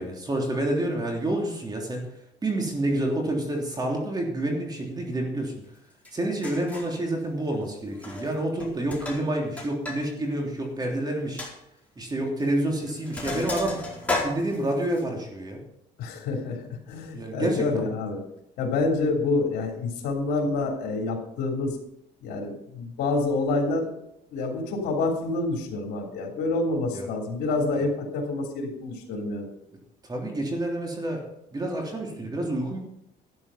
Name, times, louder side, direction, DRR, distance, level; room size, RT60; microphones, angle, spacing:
voice 1, 0.0-2.1 2.4-5.5 6.1-11.4 12.0-13.9 14.2-15.6 17.1-17.9 26.9-27.1 27.8-27.9 30.0-31.2 31.5-32.8, right 1 dB, 25° right, 1 dB, 3.2 m, -28 dB
Sink (filling or washing), 6.0-6.1 6.4-7.0 7.9-8.3 8.6-10.0 10.3-10.4 10.8-10.9 11.4-11.5 12.4-12.6 12.9-15.0, left 2 dB, 10° left, 4.4 m, -33 dB
voice 2, 16.0-16.6 16.9-18.2 18.6-21.8 22.2-23.9 24.3-29.5, left 3 dB, 75° left, 1 dB, 3.4 m, -27 dB
12.5 x 9.9 x 5.8 m, 0.78 s
cardioid pair, 110°, 17 cm